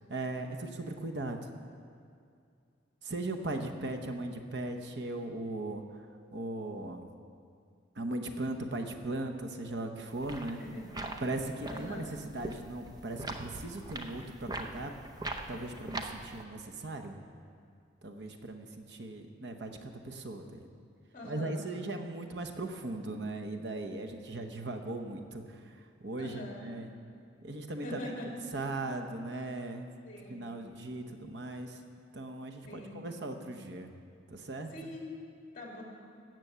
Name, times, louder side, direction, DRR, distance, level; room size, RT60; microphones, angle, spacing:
voice 1, 0.1-1.5 3.0-5.8 6.3-7.1 8.0-10.6 11.2-14.9 15.5-17.2 18.0-20.7 21.2-26.9 27.4-28.0 28.5-29.9 30.3-31.8 32.1-33.9 34.3-34.9, right 2 dB, 60° right, 4 dB, 0.9 m, -38 dB
sound 1, 10.1-16.4, right 2 dB, 20° right, 0.7 m, -42 dB
voice 2, 10.4-11.2 11.7-12.1 21.1-21.7 26.2-26.7 27.8-28.3 30.0-30.5 32.6-33.1 34.7-35.1 35.5-35.8, left 1 dB, 45° left, -1 dB, 2.8 m, -44 dB
16.5 x 7.7 x 6.8 m, 2.3 s
head